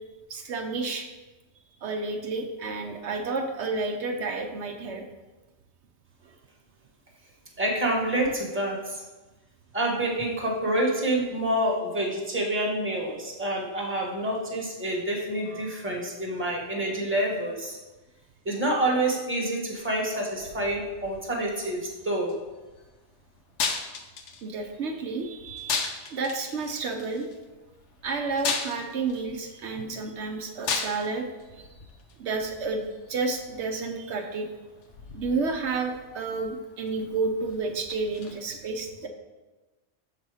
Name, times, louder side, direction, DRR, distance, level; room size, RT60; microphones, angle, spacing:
voice 1, 0.3-1.0 1.8-5.0 15.4-15.7 24.4-27.3 28.0-31.3 32.2-34.5 35.1-39.1, right 3 dB, 75° right, 2 dB, 1.0 m, -31 dB
voice 2, 7.6-9.0 9.7-17.8 18.4-22.4, right 1 dB, 10° right, -2 dB, 1.1 m, -27 dB
sound 1, 19.7-38.4, left 5 dB, 80° left, 1.0 m, -38 dB
6.8 x 4.1 x 4.8 m, 1.2 s
omnidirectional pair, 1.2 m